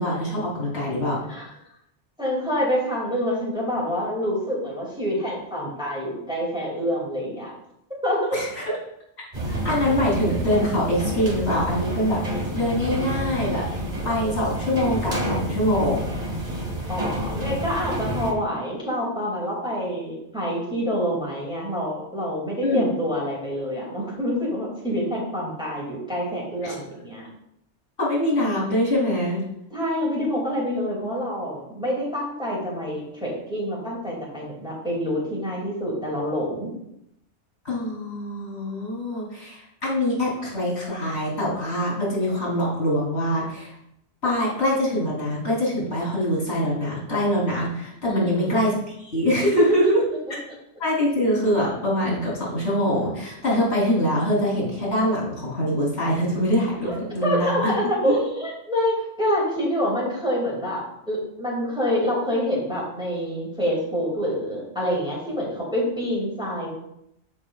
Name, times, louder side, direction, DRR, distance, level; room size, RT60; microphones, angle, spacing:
voice 1, 0.0-1.2 8.3-8.6 9.5-16.1 22.6-22.8 26.6-26.8 28.0-29.4 37.6-43.8 44.2-50.0 50.8-57.7 58.1-58.2, equal, 60° left, -4 dB, 3.6 m, -24 dB
voice 2, 2.2-7.5 8.0-8.4 16.9-27.3 29.7-36.7 48.1-48.7 49.6-49.9 56.8-57.0 57.2-66.7, equal, 5° right, -5 dB, 2.6 m, -26 dB
sound 1, 9.3-18.3, equal, 35° right, 1.7 m, -29 dB
14.5 x 5.4 x 2.4 m, 0.79 s
omnidirectional pair, 1.2 m